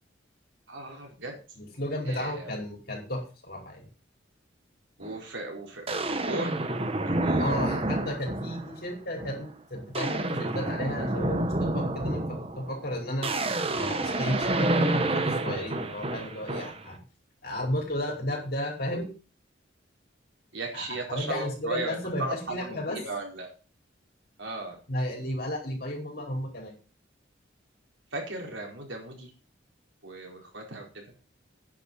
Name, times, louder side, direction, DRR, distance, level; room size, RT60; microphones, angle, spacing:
voice 1, 0.7-1.4 2.1-2.5 5.0-6.6 7.0-7.6 20.5-23.5 24.4-24.8 28.1-29.3 30.0-31.0, right 2 dB, 75° right, 1 dB, 4.7 m, -36 dB
voice 2, 1.6-3.9 7.4-13.3 13.7-17.0 17.4-19.1 20.7-23.0 24.9-26.7, left 1 dB, 50° left, 0 dB, 4.8 m, -33 dB
sound 1, 5.0-5.2 5.9-8.8 9.2-9.5 9.8-16.9, right 2 dB, 30° right, 1.2 m, -29 dB
10.0 x 7.0 x 8.3 m, 0.36 s
head